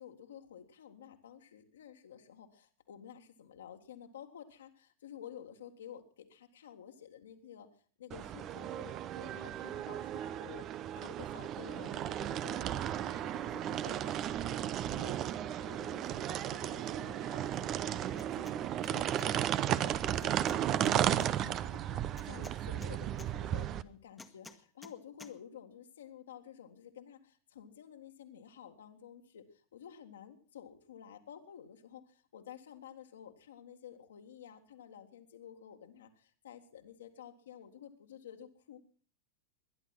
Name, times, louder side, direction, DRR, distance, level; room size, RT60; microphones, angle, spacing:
voice 1, 0.0-7.7 8.0-22.0 22.3-38.8, left 9 dB, 65° left, 4 dB, 1.9 m, -52 dB
sound 1, 8.1-23.8, right 11 dB, 35° right, 0.7 m, -34 dB
sound 2, 18.1-18.6 18.8-19.3 20.2-21.3 22.2-23.3 24.2-24.9 25.2-25.3, left 3 dB, 10° left, 1.5 m, -52 dB
20.5 x 11.0 x 6.1 m, 0.43 s
figure-of-eight pair, 90°, 0 cm